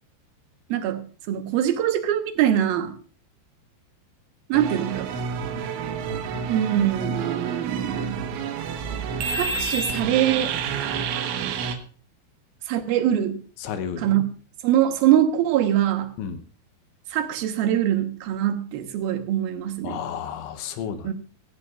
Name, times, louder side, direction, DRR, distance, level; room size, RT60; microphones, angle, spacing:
voice 1, 0.7-2.9 4.5-5.1 6.5-8.2 9.4-10.5 12.7-13.4 14.0-14.3 14.6-16.1 17.1-20.0 21.0-21.1, right 11 dB, 70° right, 2.5 m, -23 dB
sound 1, 4.5-11.8, right 5 dB, 85° right, 3.8 m, -29 dB
voice 2, 13.6-14.2 16.2-16.4 19.8-21.1, left 7 dB, 75° left, 3.2 m, -32 dB
16.5 x 15.5 x 2.4 m
omnidirectional pair, 5.4 m